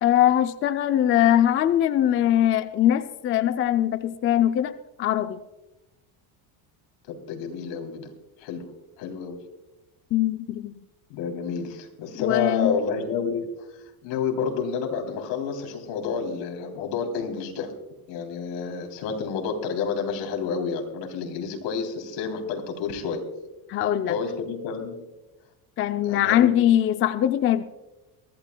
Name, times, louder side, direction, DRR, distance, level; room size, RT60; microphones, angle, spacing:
voice 1, 0.0-5.4 10.1-10.7 12.2-12.8 23.7-24.2 25.8-27.6, left 11 dB, 30° left, 10 dB, 0.4 m, -22 dB
voice 2, 7.1-8.1 8.4-8.7 9.0-9.4 11.1-13.5 14.0-17.7 18.1-23.2 24.1-25.0 26.0-26.5, left 6 dB, 75° left, 3 dB, 3.3 m, -29 dB
23.0 x 15.0 x 2.2 m, 1.1 s
cardioid pair, 140°, 44 cm